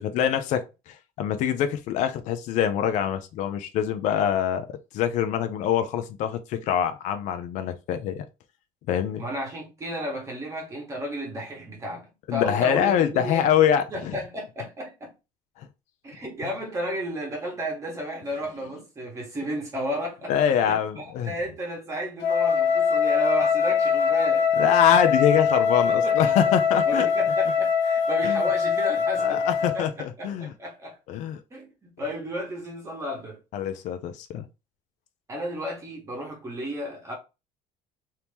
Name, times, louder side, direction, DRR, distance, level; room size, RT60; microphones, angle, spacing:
voice 1, 0.0-8.3 8.9-9.2 12.3-14.2 15.6-15.7 16.4-16.5 20.3-21.3 24.6-27.1 28.2-28.4 29.2-30.5 31.1-31.4 33.5-34.5, left 9 dB, 60° left, 0.5 m, -24 dB
voice 2, 9.2-13.5 13.9-15.1 16.0-24.5 25.9-26.5 26.9-29.5 29.7-31.0 31.5-33.4 35.3-37.1, equal, 20° right, 1.4 m, -33 dB
Wind instrument woodwind instrument, 22.2-29.9, left 6 dB, 85° left, 1.0 m, -22 dB
2.9 x 2.8 x 3.4 m
cardioid pair, 155°, 14 cm